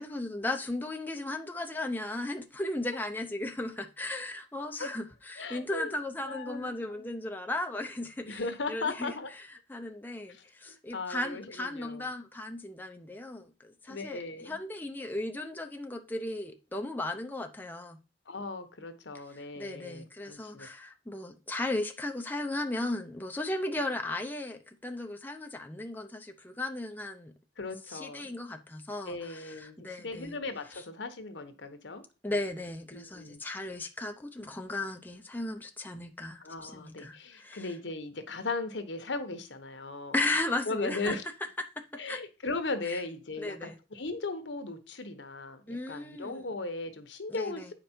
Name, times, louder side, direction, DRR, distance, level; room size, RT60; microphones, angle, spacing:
voice 1, 0.0-18.0 19.1-27.3 27.9-30.4 30.7-30.8 32.2-37.7 40.1-41.2 41.6-42.2 42.9-43.0 43.4-43.8 45.7-46.4 47.3-47.7, left 2 dB, 10° left, 0.6 m, -36 dB
voice 2, 5.4-6.0 6.2-6.7 7.0-7.2 8.2-9.3 10.3-10.4 10.9-12.1 13.9-14.5 18.3-20.7 27.6-28.2 29.1-32.0 32.9-33.4 36.4-40.1 40.7-41.2 41.9-47.6, left 3 dB, 75° left, 1.1 m, -37 dB
8.8 x 5.2 x 4.4 m
head